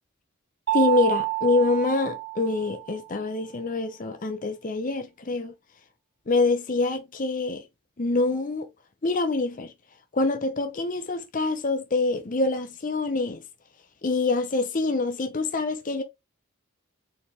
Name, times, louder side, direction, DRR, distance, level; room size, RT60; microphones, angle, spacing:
voice 1, 0.7-5.5 6.3-7.6 8.0-8.7 9.0-9.7 10.1-13.4 14.0-16.0, left 3 dB, 40° left, 0.6 m, -25 dB
Mallet percussion, 0.7-3.2, right 20 dB, 60° right, 0.3 m, -29 dB
4.2 x 3.5 x 2.9 m
head